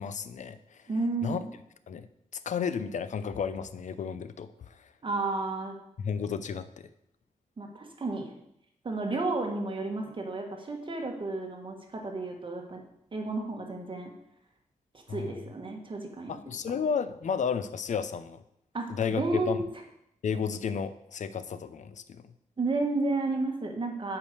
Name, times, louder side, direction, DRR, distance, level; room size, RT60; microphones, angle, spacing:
voice 1, 0.0-0.8 1.2-1.4 1.9-2.1 2.4-4.8 6.0-6.9 15.1-15.3 16.3-18.4 18.9-19.6 20.2-22.2, left 6 dB, 70° left, 13 dB, 0.6 m, -32 dB
voice 2, 0.9-1.5 5.0-5.8 7.6-8.3 8.8-12.8 13.1-14.1 15.1-16.4 18.7-19.6 22.6-24.2, right 3 dB, 40° right, 2 dB, 1.5 m, -32 dB
8.5 x 4.9 x 6.6 m, 0.78 s
wide cardioid pair, 115°, 13 cm